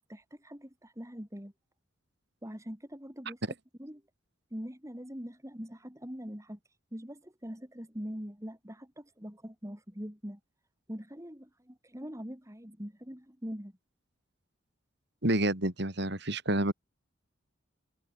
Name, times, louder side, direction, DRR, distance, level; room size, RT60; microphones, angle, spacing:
voice 1, 0.1-1.5 2.4-3.4 3.8-4.0 4.5-6.6 6.9-10.4 10.9-13.7, equal, 15° right, 3.2 m, -43 dB
voice 2, 15.2-16.7, right 1 dB, 55° right, 4.1 m, -28 dB
head